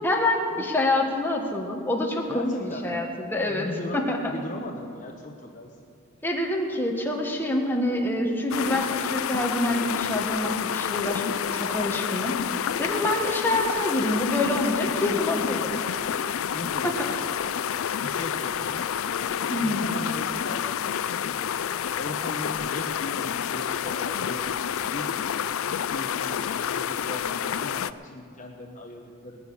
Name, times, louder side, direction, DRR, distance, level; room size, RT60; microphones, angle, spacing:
voice 1, 0.0-3.7 3.9-4.2 6.2-12.4 12.8-15.6 16.8-17.1 19.5-19.9, left 1 dB, 10° left, 0 dB, 1.5 m, -26 dB
voice 2, 2.3-3.0 3.5-4.0 4.3-5.7 14.8-16.1 16.5-17.2 18.0-21.5 21.9-25.4 25.6-29.5, left 1 dB, 35° left, 1 dB, 1.0 m, -38 dB
sound 1, 8.5-27.9, left 8 dB, 65° left, 0.4 m, -29 dB
19.5 x 6.7 x 10.0 m, 2.3 s
head